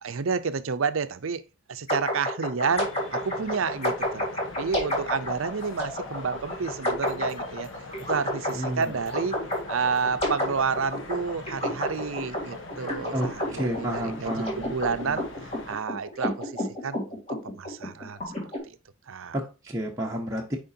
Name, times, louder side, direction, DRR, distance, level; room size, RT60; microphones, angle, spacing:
voice 1, 0.0-1.4 1.7-4.3 4.6-7.7 8.1-9.4 9.7-15.2 15.7-17.1 17.5-18.2 19.1-19.3, right 5 dB, 70° right, 0.6 m, -30 dB
sound 1, 1.9-18.6, left 1 dB, 30° left, 3.1 m, -31 dB
sound 2, 2.6-15.7, left 2 dB, 65° left, 1.3 m, -43 dB
voice 2, 8.5-9.0 13.1-14.7 15.0-15.2 19.3-20.6, right 1 dB, 15° right, 0.9 m, -31 dB
8.9 x 5.1 x 2.7 m
head